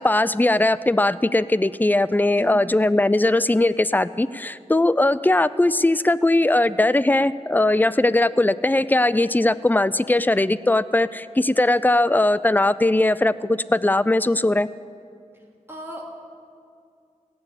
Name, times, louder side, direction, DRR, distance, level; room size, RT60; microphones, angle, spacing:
voice 1, 0.0-14.7, left 2 dB, 15° left, 16 dB, 0.4 m, -19 dB
voice 2, 15.7-16.1, equal, 15° right, -1 dB, 2.8 m, -36 dB
16.0 x 7.0 x 9.7 m, 2.3 s
wide cardioid pair, 45°, 13 cm